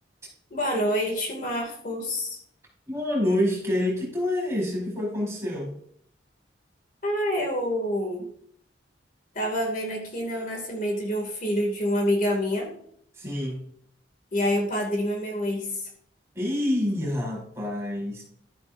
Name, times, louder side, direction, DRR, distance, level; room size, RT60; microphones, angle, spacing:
voice 1, 0.5-2.4 7.0-8.3 9.3-12.7 14.3-15.9, equal, 45° left, 1 dB, 2.5 m, -27 dB
voice 2, 2.9-5.7 13.2-13.6 16.3-18.2, left 1 dB, 15° right, -3 dB, 4.6 m, -27 dB
12.5 x 9.4 x 2.7 m, 0.64 s
head